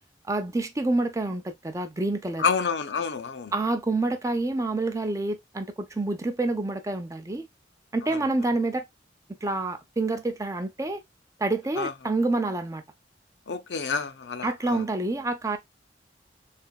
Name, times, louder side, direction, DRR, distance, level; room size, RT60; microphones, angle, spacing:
voice 1, 0.3-2.4 3.5-7.5 7.9-8.8 9.4-11.0 11.4-12.8 14.4-15.6, right 2 dB, 20° right, 0.5 m, -27 dB
voice 2, 2.4-3.5 11.8-11.9 13.5-14.8, left 5 dB, 65° left, 0.6 m, -28 dB
3.7 x 3.4 x 2.3 m
head